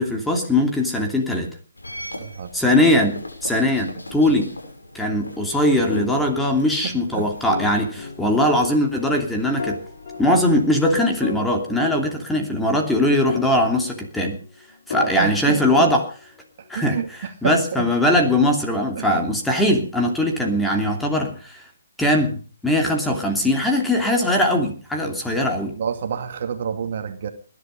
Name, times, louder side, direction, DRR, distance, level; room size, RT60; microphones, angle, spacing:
voice 1, 0.0-1.5 2.5-4.5 4.9-9.8 10.2-14.4 14.9-16.0 16.7-17.0 17.4-21.6 22.0-25.8, left 1 dB, 5° left, 2 dB, 2.9 m, -20 dB
sound 1, 1.8-11.5, left 1 dB, 90° left, 6.4 m, -40 dB
voice 2, 2.2-2.5 6.8-7.3 12.0-12.1 15.0-15.9 16.6-17.9 19.0-19.2 25.8-27.3, right 7 dB, 45° right, 7 dB, 2.3 m, -28 dB
sound 2, 5.9-7.1 7.5-8.7 9.6-10.8 11.2-12.6 13.3-14.5 14.9-16.3, left 5 dB, 55° left, 4.3 m, -34 dB
20.5 x 11.5 x 5.3 m, 0.41 s
figure-of-eight pair, 145°, 0 cm